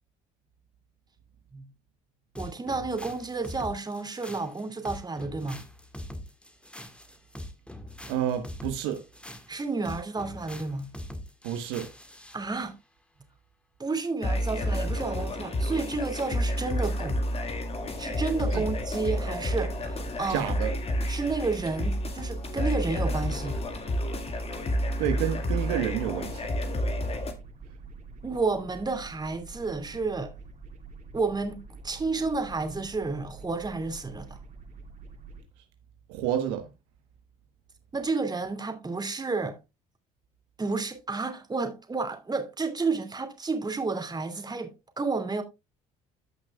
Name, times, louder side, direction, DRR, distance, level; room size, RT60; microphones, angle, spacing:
sound 1, 2.4-12.4, left 1 dB, 5° left, 1.6 m, -43 dB
voice 1, 2.4-5.6 9.5-10.9 12.3-12.7 13.8-17.2 18.0-20.5 21.1-23.6 28.2-30.3 31.1-34.4 37.9-39.6 40.6-44.7 45.0-45.4, right 3 dB, 25° right, 2.6 m, -31 dB
voice 2, 8.1-9.0 11.4-11.9 18.5-18.6 20.3-20.7 25.0-26.5 36.1-36.7, right 10 dB, 85° right, 1.2 m, -29 dB
sound 2, 14.2-27.3, left 1 dB, 35° left, 1.9 m, -30 dB
sound 3, 17.7-35.4, right 4 dB, 50° right, 3.0 m, -46 dB
15.0 x 6.0 x 2.3 m
supercardioid pair, 70°, 18 cm